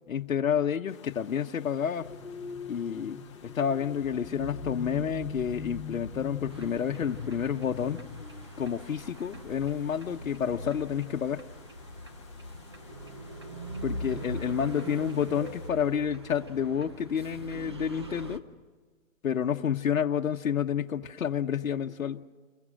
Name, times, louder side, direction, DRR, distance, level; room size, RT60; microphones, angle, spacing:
voice 1, 0.1-2.1 2.7-8.0 8.6-11.4 13.8-18.4 19.2-22.2, left 8 dB, 80° left, 0.9 m, -29 dB
sound 1, 0.9-15.7, left 7 dB, 20° left, 0.9 m, -55 dB
sound 2, 2.0-8.3, left 4 dB, ahead, 1.3 m, -41 dB
sound 3, 6.5-18.4, right 1 dB, 20° right, 0.6 m, -41 dB
29.0 x 22.5 x 6.4 m
hypercardioid pair, 170°, 40 cm